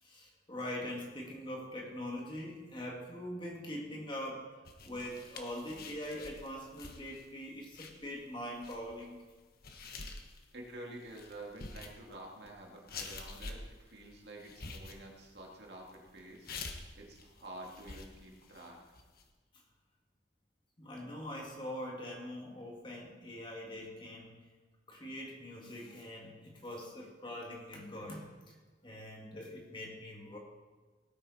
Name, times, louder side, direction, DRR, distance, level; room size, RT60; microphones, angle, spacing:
voice 1, 0.0-9.2 20.8-24.3 24.9-28.5 28.8-30.4, left 1 dB, 25° left, -1 dB, 2.3 m, -43 dB
sound 1, 4.6-19.2, left 3 dB, 55° left, 1.3 m, -48 dB
voice 2, 10.5-16.5 16.9-18.8, right 1 dB, 65° right, -1 dB, 2.5 m, -49 dB
17.5 x 9.5 x 4.3 m, 1.4 s
head